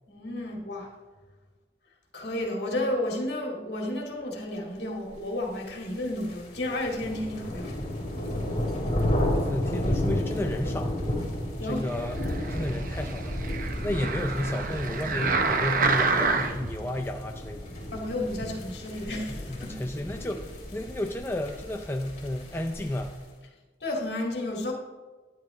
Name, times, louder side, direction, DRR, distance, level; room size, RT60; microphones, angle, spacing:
voice 1, 0.1-0.9 2.1-7.8 11.6-11.9 17.9-19.7 23.8-24.7, left 1 dB, 60° left, -1 dB, 2.3 m, -32 dB
sound 1, 5.7-23.2, left 1 dB, 40° left, 3.6 m, -32 dB
voice 2, 9.4-11.0 11.7-12.2 12.5-17.7 19.5-23.2, left 1 dB, 10° left, 3 dB, 0.4 m, -32 dB
sound 2, 12.2-16.8 17.4-17.5, right 4 dB, 45° right, 0.8 m, -28 dB
13.0 x 10.5 x 3.2 m, 1.3 s
head